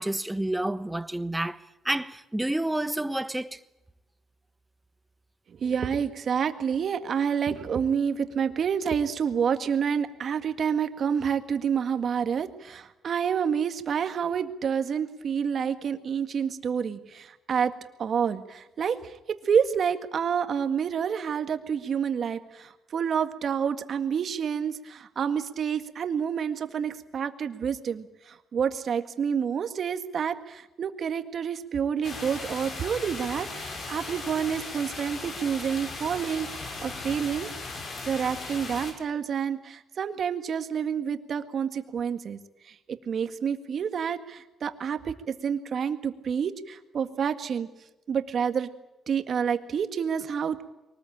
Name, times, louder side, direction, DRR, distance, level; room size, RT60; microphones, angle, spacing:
voice 1, 0.0-1.6 1.8-3.6, right 1 dB, 10° right, 1.1 m, -29 dB
voice 2, 5.6-17.7 18.0-19.1 19.4-37.5 38.1-42.4 43.1-47.7 48.1-48.7 49.1-50.6, right 7 dB, 55° right, 1.9 m, -28 dB
sound 1, 32.0-38.9, left 3 dB, 55° left, 6.5 m, -37 dB
23.5 x 19.5 x 8.8 m
cardioid pair, 90°, 0 cm